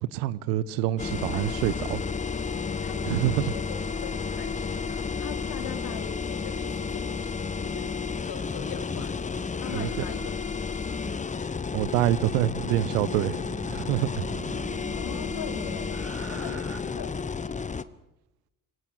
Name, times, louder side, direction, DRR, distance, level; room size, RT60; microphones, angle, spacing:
voice 1, 0.1-2.0 3.1-3.5 9.7-9.9 11.7-13.4 13.7-14.3, right 14 dB, 75° right, 19 dB, 1.0 m, -26 dB
sound 1, 1.0-17.8, left 5 dB, 15° left, 1.0 m, -32 dB
voice 2, 2.8-7.3 7.6-7.9 8.2-9.2 9.4-10.8 11.4-11.5 14.9-16.0 16.3-17.8, left 8 dB, 50° left, 6 dB, 3.3 m, -41 dB
sound 2, 9.6-11.1 12.5-16.8, right 6 dB, 35° right, 3.6 m, -43 dB
24.0 x 17.5 x 6.4 m, 0.92 s
hypercardioid pair, 60°, 45 cm